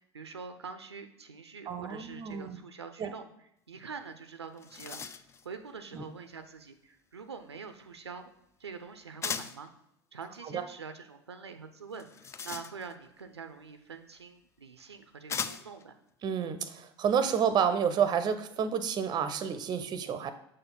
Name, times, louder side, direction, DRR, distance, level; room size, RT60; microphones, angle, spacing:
voice 1, 0.1-5.0 5.4-8.2 8.6-9.7 10.1-12.1 12.4-15.9, right 5 dB, 85° right, 9 dB, 0.5 m, -45 dB
voice 2, 1.7-2.6 3.0-3.1 5.9-6.0 10.4-10.6 16.2-20.3, right 7 dB, 30° right, 11 dB, 0.6 m, -29 dB
sound 1, 4.1-4.2 4.4-5.5 9.2-9.7 11.9-13.1 14.2-14.3 15.3-15.8, left 6 dB, 20° left, 0.3 m, -38 dB
6.4 x 4.3 x 3.8 m, 0.77 s
figure-of-eight pair, 80°, 14 cm